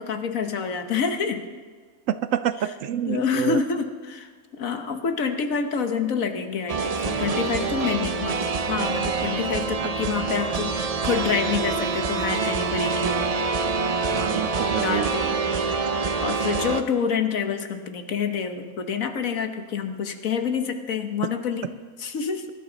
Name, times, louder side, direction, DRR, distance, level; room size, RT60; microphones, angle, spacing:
voice 1, 0.0-1.4 3.1-4.3 4.6-13.3 14.8-15.4 16.2-21.7 22.0-22.5, left 6 dB, 65° left, 6 dB, 1.5 m, -27 dB
voice 2, 2.1-3.6 14.1-15.1, right 10 dB, 70° right, 13 dB, 0.9 m, -27 dB
sound 1, 6.7-16.8, right 4 dB, 50° right, 0.4 m, -26 dB
23.0 x 12.5 x 3.9 m, 1.6 s
omnidirectional pair, 1.5 m